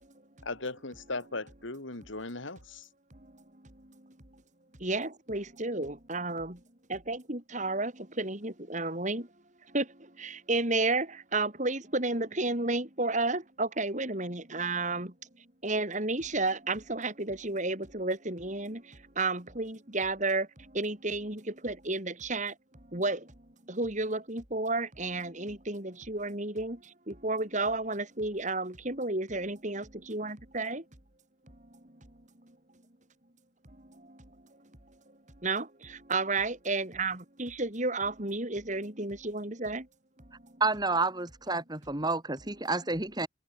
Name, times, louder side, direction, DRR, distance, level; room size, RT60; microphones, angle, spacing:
voice 1, 0.4-2.9, left 3 dB, 75° left, 3.0 m, -38 dB
voice 2, 4.8-6.6 6.9-7.9 8.2-9.2 9.7-9.9 10.2-11.1 11.3-15.1 15.6-18.8 19.2-20.5 20.8-22.5 22.9-23.2 23.7-26.8 27.1-30.8 35.4-35.7 36.1-39.8, right 2 dB, 40° right, 3.4 m, -31 dB
voice 3, 40.6-43.3, right 3 dB, 20° right, 2.3 m, -30 dB
head